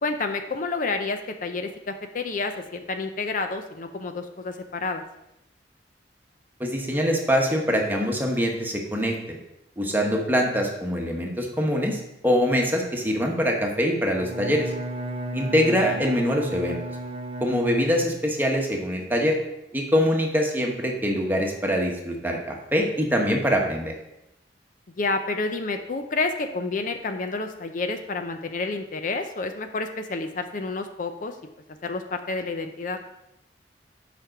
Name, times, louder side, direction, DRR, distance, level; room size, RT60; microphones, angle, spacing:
voice 1, 0.0-5.0 15.4-15.8 25.0-31.4 31.8-33.0, left 3 dB, 45° left, 6 dB, 0.6 m, -29 dB
voice 2, 6.6-9.4 9.8-14.7 15.3-16.8 17.4-19.4 19.7-23.9, equal, 10° right, 0 dB, 1.2 m, -24 dB
Bowed string instrument, 14.1-18.4, right 1 dB, 30° right, 0.7 m, -34 dB
7.5 x 5.1 x 5.8 m, 0.88 s
head